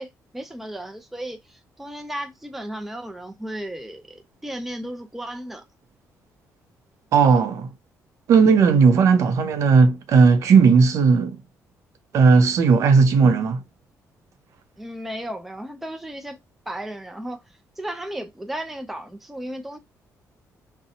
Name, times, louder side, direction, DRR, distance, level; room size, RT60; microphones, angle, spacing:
voice 1, 0.0-5.6 14.8-16.4 16.7-17.4 17.8-19.8, right 1 dB, 5° right, 0.4 m, -34 dB
voice 2, 7.1-7.7 8.3-11.4 12.1-13.6, right 5 dB, 60° right, 0.5 m, -16 dB
2.7 x 2.1 x 2.6 m
cardioid pair, 140°, 6 cm